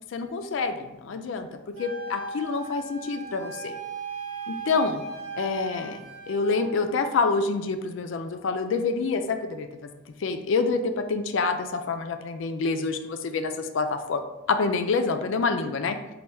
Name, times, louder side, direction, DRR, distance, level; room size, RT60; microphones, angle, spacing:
voice 1, 0.1-1.5 1.8-3.8 4.5-5.0 5.4-6.0 6.3-9.7 10.2-14.2 14.5-16.0, left 4 dB, 65° left, 8 dB, 0.3 m, -27 dB
Wind instrument woodwind instrument, 1.8-6.7, right 4 dB, 45° right, 0.9 m, -37 dB
4.2 x 2.3 x 3.3 m, 1.0 s
head